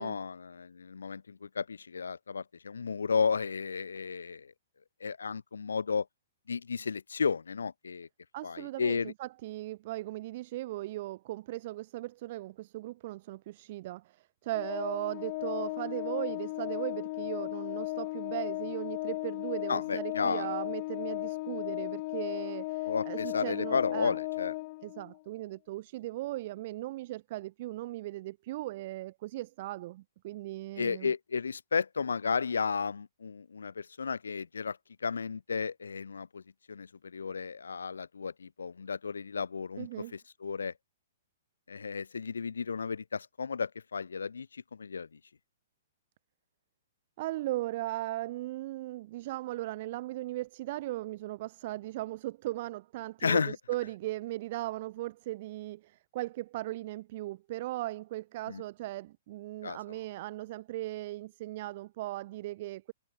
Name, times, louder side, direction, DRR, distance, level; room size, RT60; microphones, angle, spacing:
voice 1, 0.0-4.5 5.0-6.1 6.5-8.1 8.4-9.1 19.7-20.5 22.9-24.5 30.8-36.4 36.7-40.7 41.7-45.2 53.2-53.6 58.5-58.6 59.6-59.8, left 5 dB, 75° left, 0.8 m, -33 dB
voice 2, 8.3-24.1 24.8-31.1 39.8-40.2 47.2-62.9, right 17 dB, 45° right, 0.7 m, -38 dB
Organ, 14.5-25.2, left 21 dB, 40° left, 0.4 m, -36 dB
figure-of-eight pair, 115°, 0 cm